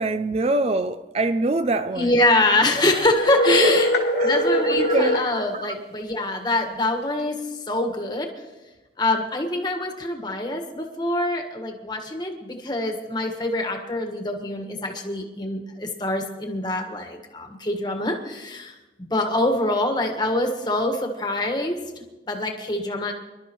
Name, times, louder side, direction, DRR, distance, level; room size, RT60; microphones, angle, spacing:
voice 1, 0.0-2.1 3.5-4.4 4.6-5.8, right 2 dB, 35° right, 0.4 m, -25 dB
voice 2, 1.9-3.9 4.2-8.3 9.0-21.8 22.3-23.1, left 2 dB, 25° left, 1.5 m, -25 dB
sound 1, 3.2-5.3, left 1 dB, 85° left, 2.2 m, -22 dB
25.5 x 12.0 x 3.1 m
head